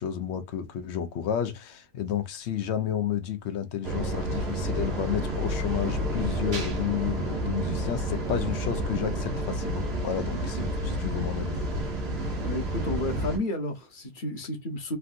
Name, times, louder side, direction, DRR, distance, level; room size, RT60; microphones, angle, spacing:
voice 1, 0.0-11.6, left 9 dB, 70° left, 0.9 m, -31 dB
sound 1, 3.8-13.4, right 1 dB, 60° right, 1.2 m, -30 dB
voice 2, 12.4-15.0, left 1 dB, 45° left, 1.0 m, -32 dB
3.4 x 2.6 x 2.5 m
omnidirectional pair, 1.2 m